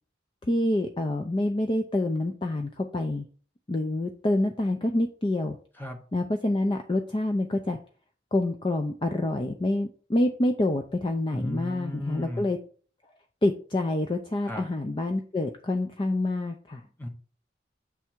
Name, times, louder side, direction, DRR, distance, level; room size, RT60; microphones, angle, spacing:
voice 1, 0.5-3.3 3.7-5.6 6.1-7.8 8.3-12.6 13.4-16.8, left 1 dB, 25° left, 5 dB, 0.4 m, -27 dB
voice 2, 11.3-12.5 14.4-14.7 17.0-17.1, equal, 10° left, 3 dB, 0.9 m, -35 dB
7.3 x 3.4 x 4.5 m, 0.42 s
head